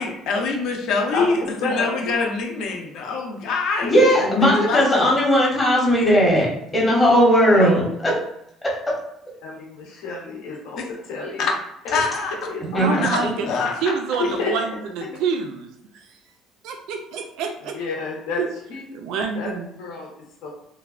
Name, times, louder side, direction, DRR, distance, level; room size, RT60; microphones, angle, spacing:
voice 1, 0.0-5.1 10.8-10.9 11.4-11.5 11.9-12.3 13.0-13.9 14.3-14.4, left 4 dB, 60° left, 2 dB, 0.5 m, -25 dB
voice 2, 1.1-2.0 2.7-2.8 7.5-7.8 9.4-11.5 11.8-12.0 12.5-13.0 14.2-14.5 15.0-15.2 17.7-18.8 19.3-19.5 19.8-20.1 20.4-20.5, left 3 dB, 90° left, -2 dB, 0.7 m, -30 dB
voice 3, 3.8-8.1 8.6-8.9 12.7-13.0, equal, 15° left, -4 dB, 0.7 m, -17 dB
voice 4, 12.6-13.5 13.8-15.7 16.6-17.8 18.4-18.5 18.9-19.7, right 5 dB, 70° right, 4 dB, 0.3 m, -27 dB
3.2 x 2.1 x 2.3 m, 0.79 s
cardioid pair, 170°, 0 cm